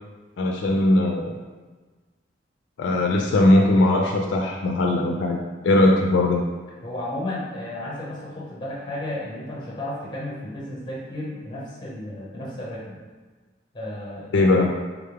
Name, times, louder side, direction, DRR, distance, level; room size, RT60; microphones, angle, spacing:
voice 1, 0.4-1.3 2.8-5.4 5.6-6.4 14.3-14.7, left 2 dB, 75° left, 1 dB, 0.3 m, -19 dB
voice 2, 6.8-13.0 13.7-14.6, left 1 dB, 25° left, -5 dB, 0.9 m, -33 dB
3.6 x 2.3 x 3.3 m, 1.3 s
head